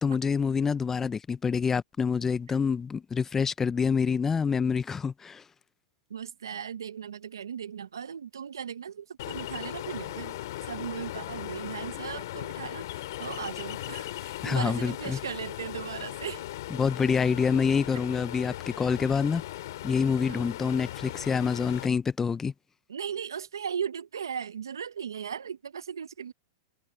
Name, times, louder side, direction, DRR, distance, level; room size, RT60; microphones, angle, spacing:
voice 1, 0.0-5.4 14.4-15.2 16.7-19.4 19.8-22.5, left 6 dB, 15° left, 0.6 m, -27 dB
voice 2, 6.1-10.3 10.6-16.4 20.3-20.5 22.9-26.3, right 7 dB, 90° right, 1.1 m, -37 dB
Ocean, 9.2-21.9, left 15 dB, 70° left, 2.5 m, -38 dB
hypercardioid pair, 110°, 2 cm